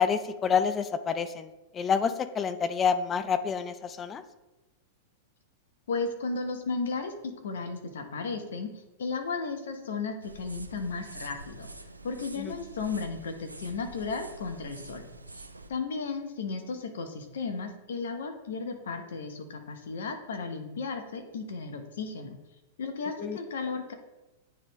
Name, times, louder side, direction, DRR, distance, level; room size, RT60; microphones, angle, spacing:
voice 1, 0.0-4.2 12.4-12.5 23.2-23.4, left 6 dB, 25° left, 11 dB, 0.5 m, -28 dB
voice 2, 5.9-8.7 9.0-11.7 12.0-15.1 15.3-15.4 15.7-22.4 22.8-23.9, left 4 dB, 65° left, 6 dB, 0.9 m, -34 dB
sound 1, 10.2-15.7, right 2 dB, 90° right, 0.4 m, -46 dB
9.7 x 3.5 x 3.1 m, 1.0 s
figure-of-eight pair, 95°, 0 cm